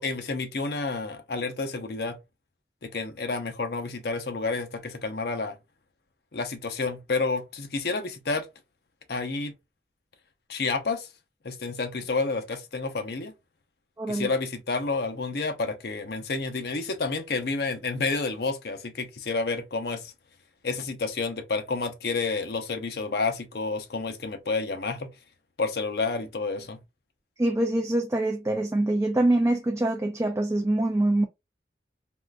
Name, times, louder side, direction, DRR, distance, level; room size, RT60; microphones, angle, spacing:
voice 1, 0.0-2.2 2.8-5.6 6.3-8.5 9.1-9.5 10.5-11.1 11.4-13.3 14.1-20.1 20.6-25.1 25.6-26.8, left 3 dB, 60° left, 0.6 m, -30 dB
voice 2, 14.0-14.3 27.4-31.3, right 1 dB, 15° right, 0.3 m, -24 dB
3.6 x 2.5 x 2.2 m
head